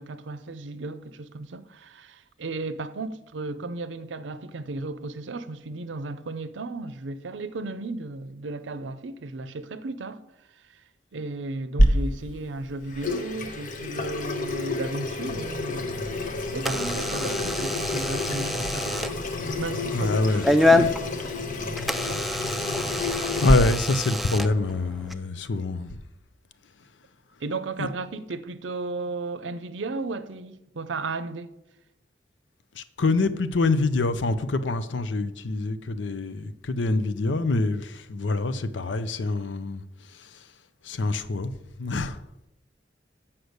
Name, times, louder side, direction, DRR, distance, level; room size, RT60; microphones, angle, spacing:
voice 1, 0.0-10.2 10.6-10.8 11.1-16.1 16.5-19.1 19.4-21.1 27.4-31.5, right 3 dB, 90° right, 0.6 m, -35 dB
Water tap faucet / Sink (filling or washing), 11.8-23.5, left 1 dB, 45° left, 0.9 m, -28 dB
Door / Alarm, 15.9-25.1, left 1 dB, ahead, 0.4 m, -28 dB
voice 2, 19.9-20.9 23.4-26.0 27.8-27.9 32.7-40.5 40.8-41.5 41.8-42.2, left 3 dB, 85° left, 0.6 m, -26 dB
8.0 x 5.8 x 6.6 m
head